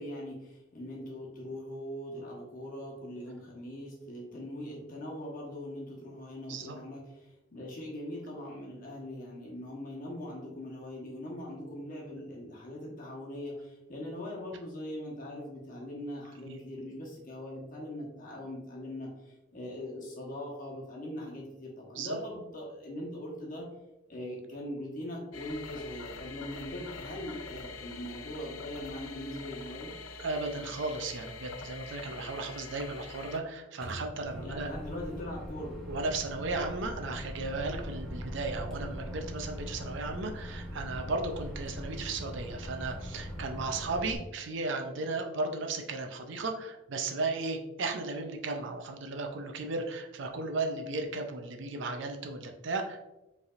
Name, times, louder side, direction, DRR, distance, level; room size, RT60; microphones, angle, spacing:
voice 1, 0.0-7.0 7.5-19.1 19.5-23.7 24.1-29.9 34.4-35.8, left 1 dB, 40° left, -3 dB, 1.2 m, -41 dB
sound 1, 25.3-33.4, left 4 dB, 85° left, 0.5 m, -45 dB
voice 2, 30.2-34.7 35.9-53.1, right 3 dB, 60° right, 4 dB, 0.5 m, -35 dB
Microwave oven, 33.8-44.2, equal, ahead, 0.8 m, -41 dB
5.1 x 3.4 x 2.5 m, 0.98 s
head